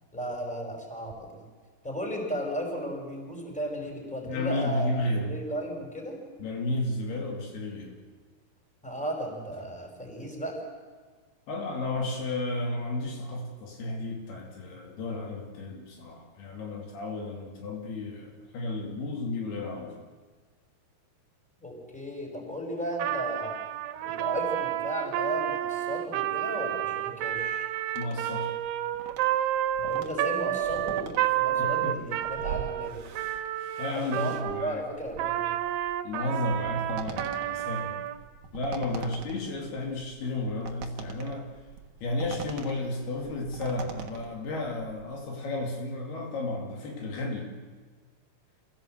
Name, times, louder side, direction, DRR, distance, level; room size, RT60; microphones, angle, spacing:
voice 1, 0.1-1.4 1.8-4.9 5.2-6.2 8.8-10.5 21.6-23.6 24.0-27.6 29.8-33.0 33.9-35.5 39.0-39.1, equal, ahead, 0 dB, 5.1 m, -35 dB
voice 2, 4.2-5.4 6.4-8.0 11.5-20.1 28.0-28.5 31.6-32.0 33.8-34.8 36.0-38.0 38.5-41.6 42.0-47.5, left 2 dB, 75° left, 0 dB, 4.4 m, -33 dB
Trumpet, 22.9-34.7 35.2-38.2, right 12 dB, 90° right, 3.1 m, -30 dB
sound 1, 27.9-45.2, right 7 dB, 55° right, 2.4 m, -43 dB
27.5 x 16.0 x 7.8 m, 1.5 s
omnidirectional pair, 4.6 m